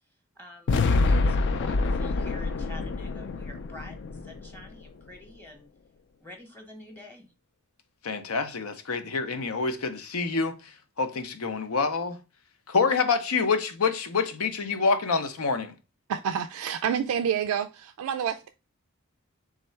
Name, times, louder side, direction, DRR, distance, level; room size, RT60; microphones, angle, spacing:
voice 1, 0.4-5.7 6.2-7.3, left 1 dB, 10° left, 0.9 m, -47 dB
sound 1, 0.7-4.8, left 3 dB, 55° left, 0.4 m, -26 dB
voice 2, 8.0-10.6 11.0-12.2 12.7-15.7, left 4 dB, 90° left, 0.7 m, -27 dB
voice 3, 16.1-18.5, right 8 dB, 85° right, 0.3 m, -28 dB
3.6 x 3.2 x 4.3 m
head